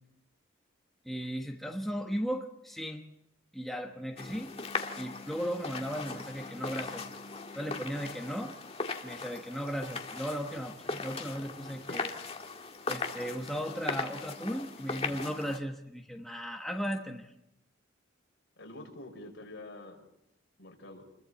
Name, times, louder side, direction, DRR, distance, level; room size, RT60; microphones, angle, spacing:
voice 1, 1.0-3.0 3.5-4.5 5.0-7.1 7.5-8.6 9.0-12.1 12.9-17.3, equal, ahead, 1 dB, 1.3 m, -36 dB
sound 1, 4.2-15.6, left 4 dB, 30° left, 1.9 m, -39 dB
voice 2, 18.6-20.0 20.6-21.1, left 2 dB, 55° left, 2 dB, 5.9 m, -46 dB
29.0 x 22.5 x 4.3 m, 0.85 s
head